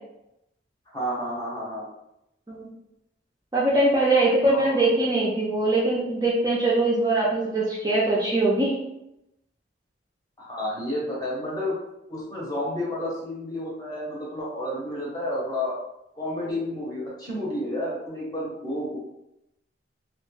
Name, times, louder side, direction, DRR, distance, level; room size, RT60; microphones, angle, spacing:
voice 1, 0.9-1.9 4.5-4.9 10.4-11.8 12.1-15.7 16.2-19.0, left 1 dB, 20° left, -5 dB, 0.7 m, -31 dB
voice 2, 3.5-8.8, right 2 dB, 20° right, -5 dB, 0.3 m, -22 dB
2.2 x 2.0 x 3.0 m, 0.85 s
head